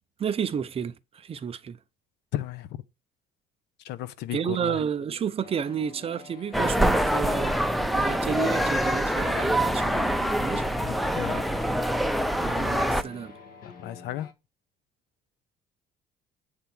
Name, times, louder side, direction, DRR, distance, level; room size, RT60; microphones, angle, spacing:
voice 1, 0.2-1.8 4.3-7.6 7.9-10.6 12.4-13.3, right 7 dB, 35° right, 0.7 m, -31 dB
voice 2, 2.3-2.8 3.8-4.8 10.8-11.4 13.6-14.3, left 12 dB, 80° left, 0.8 m, -34 dB
sound 1, 5.4-14.3, left 5 dB, 60° left, 1.6 m, -46 dB
sound 2, 6.5-13.0, equal, ahead, 0.6 m, -25 dB
8.1 x 3.7 x 6.1 m
cardioid pair, 110°, 17 cm